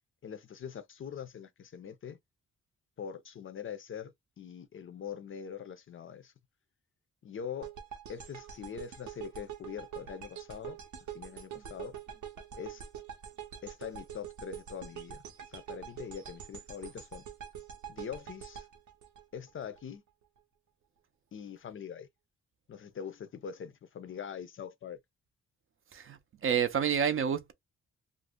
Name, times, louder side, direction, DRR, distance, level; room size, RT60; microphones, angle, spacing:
voice 1, 0.2-2.2 3.0-6.3 7.2-7.7 8.1-10.8 11.1-11.9 12.6-12.8 13.6-17.2 17.9-18.7 19.3-20.0 21.3-22.1 22.7-25.0, left 7 dB, 45° left, 0.4 m, -43 dB
sound 1, 7.6-19.8, right 9 dB, 85° right, 0.7 m, -45 dB
voice 2, 26.4-27.5, right 7 dB, 45° right, 0.5 m, -28 dB
2.5 x 2.0 x 3.5 m
cardioid pair, 105°, 29 cm